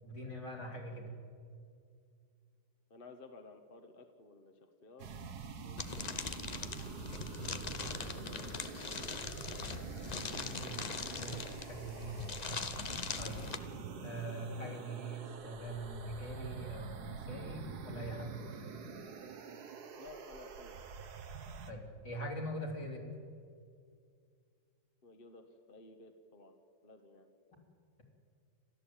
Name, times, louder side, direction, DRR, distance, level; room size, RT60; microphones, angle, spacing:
voice 1, 0.0-1.1 10.3-10.8 11.1-12.4 13.2-13.4 14.0-18.4 21.7-23.0, right 1 dB, 65° left, -1 dB, 4.4 m, -43 dB
voice 2, 2.9-5.1 5.6-6.5 7.6-9.7 20.0-20.8 25.0-26.5 26.8-27.3, left 3 dB, 30° left, 5 dB, 1.4 m, -56 dB
sound 1, 5.0-21.7, right 5 dB, 60° right, 1.6 m, -46 dB
sound 2, 5.8-13.6, left 5 dB, 50° left, 0.4 m, -41 dB
29.0 x 13.5 x 8.8 m, 2.3 s
omnidirectional pair, 2.0 m